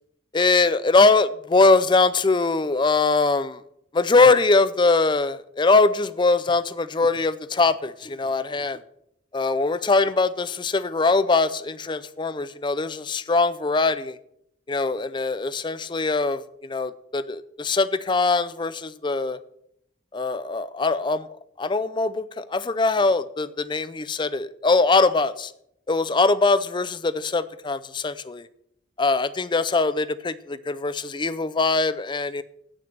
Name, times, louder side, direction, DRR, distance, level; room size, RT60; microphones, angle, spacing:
voice 1, 0.3-3.6 3.9-8.8 9.3-14.2 14.7-19.4 20.1-21.3 21.6-25.5 25.9-28.5 29.0-32.4, left 3 dB, 25° left, 16 dB, 0.4 m, -22 dB
9.0 x 6.2 x 7.4 m, 0.73 s
head